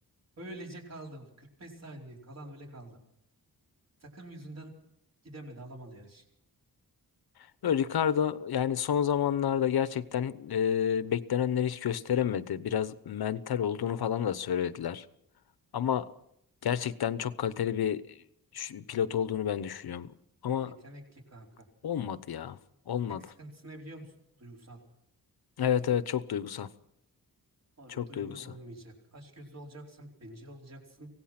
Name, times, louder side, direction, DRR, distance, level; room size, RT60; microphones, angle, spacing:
voice 1, 0.4-3.0 4.0-4.7 5.2-6.2 20.6-21.7 23.1-24.8 27.8-31.1, right 1 dB, 45° right, 4.6 m, -47 dB
voice 2, 7.6-15.0 15.7-16.1 16.6-18.0 18.5-20.1 20.4-20.7 21.8-22.6 22.9-23.2 25.6-26.7 28.0-28.4, left 9 dB, 80° left, 1.0 m, -29 dB
25.0 x 17.5 x 6.0 m
wide cardioid pair, 170°, 37 cm